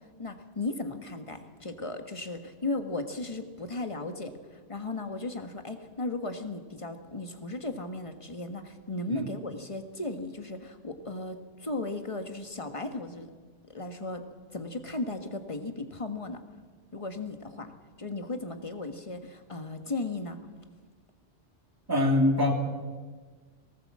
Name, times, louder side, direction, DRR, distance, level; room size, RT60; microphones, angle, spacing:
voice 1, 0.2-13.3 13.7-14.2 14.5-16.4 16.9-17.7 18.0-20.4, left 2 dB, 30° left, 7 dB, 1.6 m, -36 dB
voice 2, 21.9-22.5, left 1 dB, 20° right, 1 dB, 2.6 m, -24 dB
19.5 x 17.5 x 7.6 m, 1.5 s
omnidirectional pair, 1.2 m